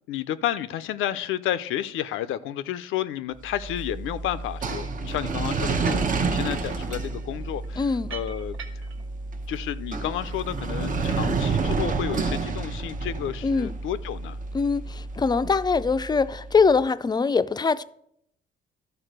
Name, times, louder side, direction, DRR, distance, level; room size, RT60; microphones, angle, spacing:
voice 1, 0.1-8.6 9.5-14.4, left 11 dB, 85° left, 0.5 m, -31 dB
sound 1, 3.5-16.6, right 4 dB, 40° right, 0.8 m, -30 dB
sound 2, 4.7-5.0 5.6-6.1 6.4-9.0, right 6 dB, 85° right, 1.6 m, -43 dB
voice 2, 7.8-8.1 13.4-13.7 14.5-17.8, left 5 dB, 20° left, 0.4 m, -23 dB
12.0 x 4.2 x 6.6 m
cardioid pair, 90°, 20 cm